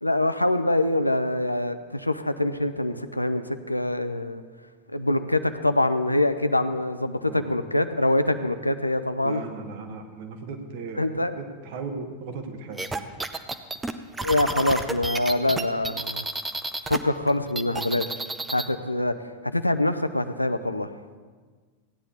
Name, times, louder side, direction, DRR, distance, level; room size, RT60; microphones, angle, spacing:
voice 1, 0.0-4.4 4.9-9.4 11.0-11.3 14.2-16.2 16.9-18.2 18.5-19.1 19.4-20.9, left 1 dB, 85° left, 10 dB, 0.5 m, -24 dB
voice 2, 7.2-7.5 9.2-11.1 11.4-13.1, right 4 dB, 50° right, 5 dB, 1.3 m, -37 dB
sound 1, 12.8-17.0 17.3-18.7, right 2 dB, 10° right, 0.6 m, -30 dB
15.5 x 9.7 x 3.9 m, 1.5 s
figure-of-eight pair, 90°, 0 cm